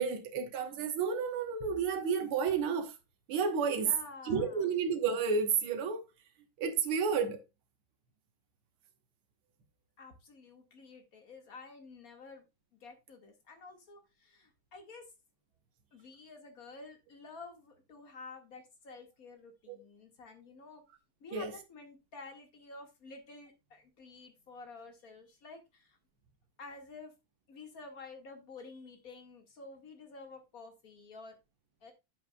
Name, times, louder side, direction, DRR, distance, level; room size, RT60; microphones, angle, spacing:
voice 1, 0.0-2.9 3.3-3.9 4.3-6.0 6.6-7.4 19.7-19.8 21.3-21.5, right 6 dB, 75° right, 2.1 m, -31 dB
voice 2, 3.8-4.7 10.0-12.5 12.7-15.1 15.9-20.8 21.2-26.0 26.6-27.1 27.5-31.4 31.8-31.9, left 3 dB, 40° left, 2.3 m, -50 dB
9.4 x 8.0 x 2.3 m
omnidirectional pair, 2.4 m